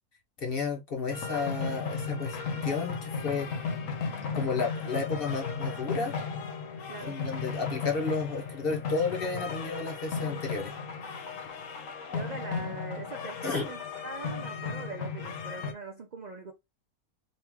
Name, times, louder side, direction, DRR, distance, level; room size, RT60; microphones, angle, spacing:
voice 1, 0.4-2.4 2.6-3.5 4.3-6.2 7.0-10.7 13.4-13.7, left 4 dB, 45° left, 0.9 m, -32 dB
sound 1, 1.1-15.7, left 5 dB, 65° left, 1.1 m, -35 dB
voice 2, 6.9-7.3 12.1-16.5, right 2 dB, 55° right, 0.4 m, -42 dB
3.0 x 2.9 x 3.4 m
omnidirectional pair, 1.6 m